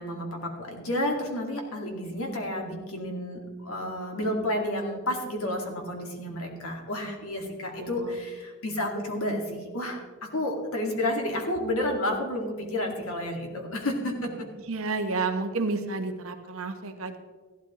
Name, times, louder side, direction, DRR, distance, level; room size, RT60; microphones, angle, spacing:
voice 1, 0.0-10.0 10.3-14.3, left 1 dB, 70° left, 1 dB, 2.1 m, -31 dB
voice 2, 7.8-8.2 14.7-17.2, right 3 dB, 65° right, 6 dB, 1.1 m, -31 dB
15.5 x 12.0 x 3.1 m, 1.4 s
head